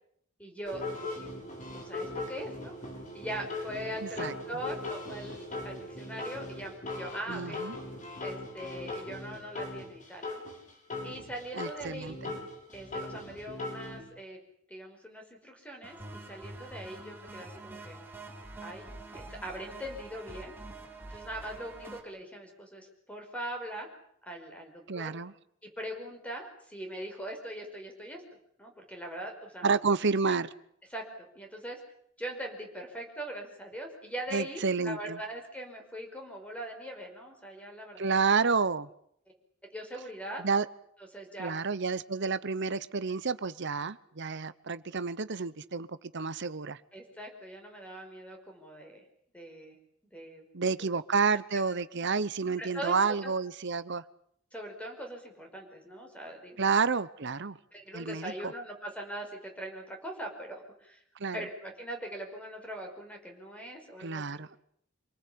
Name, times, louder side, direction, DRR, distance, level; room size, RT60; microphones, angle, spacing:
voice 1, 0.4-1.5 1.7-2.7 3.1-7.6 8.2-10.4 11.0-12.2 12.7-14.4 14.7-18.0 18.6-18.9 19.1-20.5 21.1-23.9 24.2-25.1 25.6-28.2 28.6-29.8 30.3-30.4 30.9-31.8 32.2-38.2 39.7-40.4 41.1-41.5 46.9-49.0 49.3-49.8 50.1-50.5 50.8-50.9 52.6-53.3 54.5-56.6 57.7-61.0 61.3-64.4, right 1 dB, 5° left, 3 dB, 5.4 m, -41 dB
sound 1, 0.6-14.0, left 2 dB, 40° left, 7.2 m, -39 dB
voice 2, 4.0-4.3 7.3-7.8 11.5-12.3 24.9-25.3 29.6-30.5 34.3-35.2 38.0-38.9 40.4-40.7 41.4-46.8 50.5-54.0 56.6-57.6 57.9-58.5 61.2-61.5 64.0-64.6, right 5 dB, 60° right, 15 dB, 1.0 m, -30 dB
sound 2, 15.8-22.0, right 2 dB, 10° right, 3.7 m, -46 dB
26.5 x 19.0 x 8.7 m, 0.69 s
head